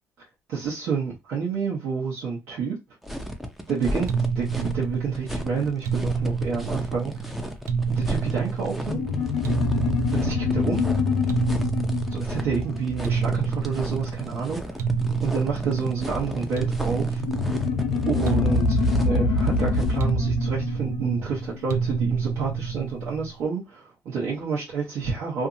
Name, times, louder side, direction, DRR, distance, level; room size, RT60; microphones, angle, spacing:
voice 1, 0.5-2.7 3.7-4.1 4.3-7.4 7.9-9.0 10.1-10.9 12.1-14.8 15.2-17.2 18.0-25.5, right 5 dB, 80° right, 1.1 m, -29 dB
sound 1, 3.0-20.1, equal, 5° right, 0.4 m, -35 dB
sound 2, 4.1-23.4, right 5 dB, 65° right, 0.4 m, -29 dB
sound 3, 8.9-13.8 17.2-22.1, left 4 dB, 90° left, 0.7 m, -26 dB
2.7 x 2.6 x 2.5 m
cardioid pair, 155°, 5 cm